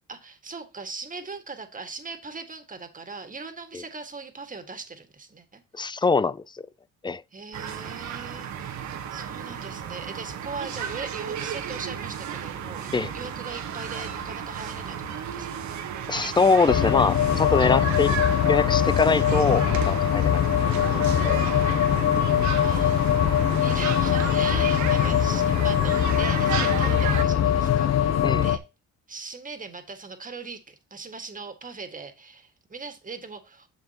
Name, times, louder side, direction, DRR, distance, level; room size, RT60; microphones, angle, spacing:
voice 1, 0.1-5.6 7.3-15.7 22.4-28.6 29.1-33.7, right 4 dB, 25° right, 1.8 m, -40 dB
voice 2, 5.7-6.4 7.0-7.2 12.9-13.1 16.1-18.2 18.5-20.4 20.9-21.4 28.2-28.4, left 4 dB, 15° left, 0.3 m, -23 dB
sound 1, 7.5-27.2, right 8 dB, 70° right, 1.3 m, -33 dB
sound 2, 16.7-28.6, left 10 dB, 60° left, 0.8 m, -22 dB
9.8 x 7.1 x 2.9 m
cardioid pair, 90°, 30 cm